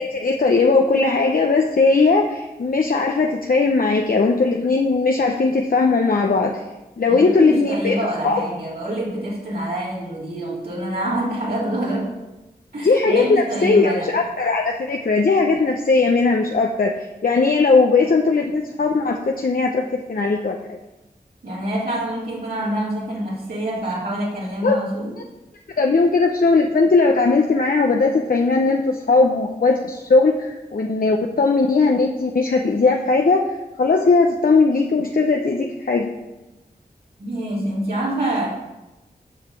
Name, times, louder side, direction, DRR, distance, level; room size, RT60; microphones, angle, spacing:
voice 1, 0.0-6.6 7.0-8.0 8.2-8.4 12.8-20.8 24.6-24.8 25.8-33.4 33.8-36.1, left 3 dB, 55° left, 2 dB, 0.8 m, -18 dB
voice 2, 7.1-12.1 12.7-14.1 21.4-25.1 37.2-38.5, right 1 dB, 65° right, -7 dB, 3.2 m, -26 dB
7.6 x 5.0 x 7.0 m, 1.0 s
cardioid pair, 40°, 17 cm